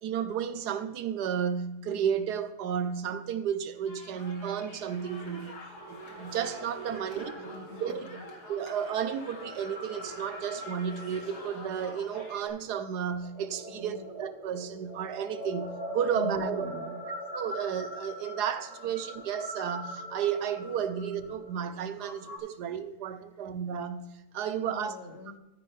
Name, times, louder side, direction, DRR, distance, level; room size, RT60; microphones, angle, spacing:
voice 1, 0.0-5.5 5.9-7.3 7.8-8.1 8.5-16.7 17.3-24.9, right 8 dB, 90° right, 1.4 m, -32 dB
sound 1, 3.9-12.5, left 2 dB, 85° left, 2.7 m, -48 dB
sound 2, 5.8-22.4, equal, 25° right, 2.2 m, -43 dB
voice 2, 7.1-8.2 13.7-14.1 16.1-17.0 24.5-25.4, left 3 dB, 45° left, 1.9 m, -42 dB
13.0 x 9.8 x 3.3 m
omnidirectional pair, 1.7 m